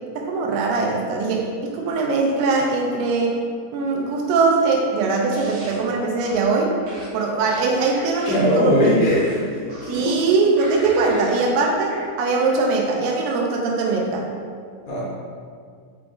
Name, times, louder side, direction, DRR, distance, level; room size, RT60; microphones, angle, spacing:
voice 1, 0.2-3.4 3.7-6.7 7.1-9.1 9.9-14.3, right 3 dB, 85° right, 0 dB, 2.3 m, -21 dB
sound 1, 5.3-5.8 6.2-6.5 6.9-8.6 9.0-10.1 10.6-11.4 11.9-12.0, right 1 dB, 65° right, 1.9 m, -40 dB
voice 2, 8.3-9.6 9.9-10.2 14.9-15.0, equal, 75° left, -5 dB, 1.9 m, -19 dB
5.8 x 2.4 x 3.7 m, 2.1 s
omnidirectional pair, 4.0 m